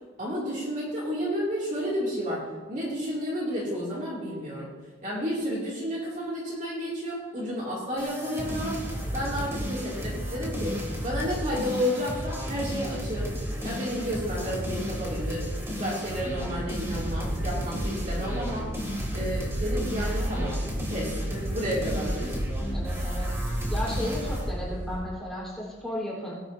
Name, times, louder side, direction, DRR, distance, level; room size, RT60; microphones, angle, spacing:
voice 1, 0.2-4.7 5.0-8.8 9.1-13.3 13.6-15.5 15.8-18.7 19.1-20.5 20.9-22.4, equal, 40° right, -6 dB, 2.8 m, -31 dB
sound 1, 8.0-24.5, equal, 15° right, 2.6 m, -33 dB
sound 2, 16.0-25.0, equal, 70° right, 4.6 m, -33 dB
voice 2, 22.7-23.3 23.7-26.4, left 1 dB, ahead, -6 dB, 4.3 m, -34 dB
18.0 x 11.5 x 2.8 m, 1.3 s
head